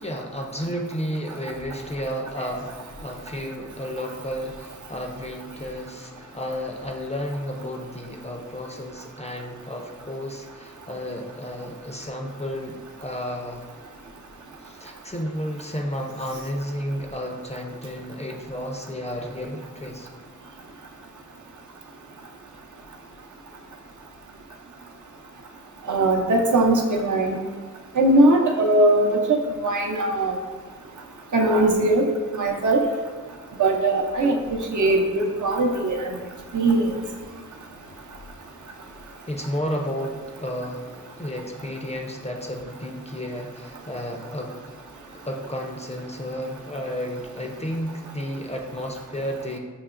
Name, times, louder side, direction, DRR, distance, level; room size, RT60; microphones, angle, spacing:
voice 1, 0.0-13.7 14.6-20.1 39.3-44.6 45.2-49.6, equal, 20° left, 1 dB, 0.4 m, -32 dB
voice 2, 25.9-27.4 28.0-30.3 31.3-32.1 32.3-32.9 33.6-36.2 36.5-36.9, right 2 dB, 65° right, 2 dB, 0.6 m, -20 dB
6.8 x 2.9 x 2.4 m, 1.4 s
wide cardioid pair, 80°, 33 cm